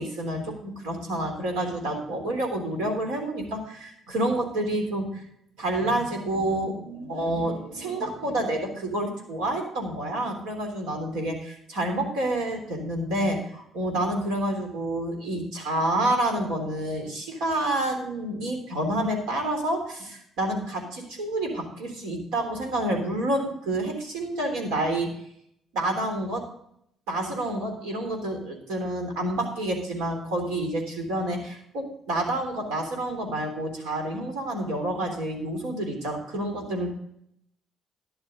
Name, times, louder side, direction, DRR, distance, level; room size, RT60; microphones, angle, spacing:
voice 1, 0.0-5.2 5.6-25.2 25.7-26.5 27.1-36.9, right 1 dB, 75° right, 3 dB, 3.5 m, -28 dB
12.5 x 10.0 x 3.9 m, 0.71 s
hypercardioid pair, 50°, 0 cm